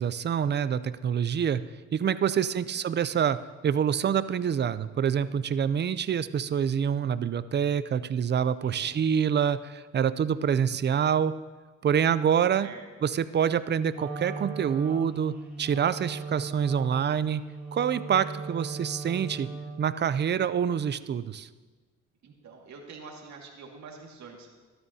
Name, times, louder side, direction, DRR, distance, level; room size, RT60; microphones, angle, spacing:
voice 1, 0.0-1.6 1.9-11.3 11.8-12.7 13.0-17.4 17.7-19.5 19.8-21.5, right 8 dB, 35° right, 14 dB, 0.5 m, -26 dB
voice 2, 8.6-8.9 12.6-12.8 22.2-24.5, right 4 dB, 65° right, 0 dB, 2.1 m, -46 dB
Wind instrument woodwind instrument, 13.9-19.9, right 4 dB, 5° right, 3.8 m, -38 dB
14.0 x 12.5 x 2.8 m, 1.4 s
cardioid pair, 90°, 30 cm